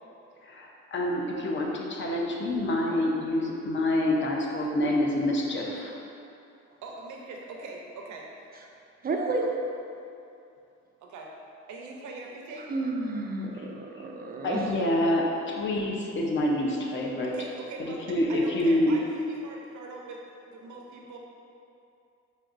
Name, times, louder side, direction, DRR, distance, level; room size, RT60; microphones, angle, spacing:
voice 1, 0.4-5.9 13.5-13.7 14.4-17.3 17.8-18.9, left 1 dB, 40° left, -1 dB, 0.6 m, -27 dB
voice 2, 6.8-8.3 11.0-11.3 11.7-12.8 17.2-20.2 20.5-21.2, right 3 dB, 75° right, -1 dB, 0.7 m, -42 dB
voice 3, 9.0-9.5 12.7-14.6, right 2 dB, 30° right, 1 dB, 0.4 m, -31 dB
5.2 x 2.6 x 2.5 m, 2.7 s
cardioid pair, 90°, 30 cm